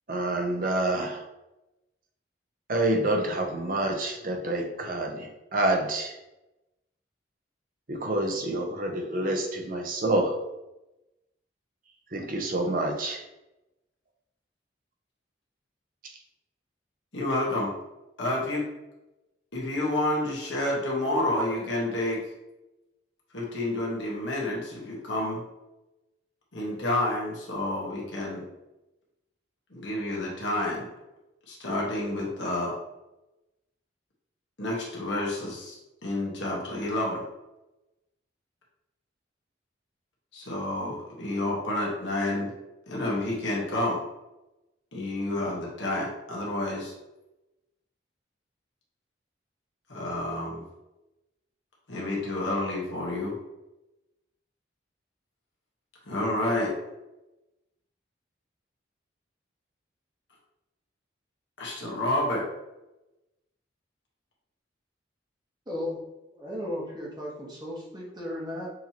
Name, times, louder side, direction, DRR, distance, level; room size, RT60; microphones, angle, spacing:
voice 1, 0.1-1.2 2.7-6.1 7.9-10.3 12.1-13.2, right 1 dB, 45° right, 3 dB, 0.7 m, -27 dB
voice 2, 17.1-17.7 18.2-18.6 19.5-22.2 23.3-25.4 26.5-28.4 29.7-30.9 31.5-32.8 34.6-37.2 40.3-42.5 42.9-44.0 44.9-46.9 49.9-50.6 51.9-53.4 56.1-56.8 61.6-62.4, left 1 dB, 75° left, -3 dB, 1.2 m, -29 dB
voice 3, 65.7-66.0 66.3-68.7, left 1 dB, 25° right, -3 dB, 1.0 m, -35 dB
6.5 x 2.8 x 2.9 m, 0.98 s
head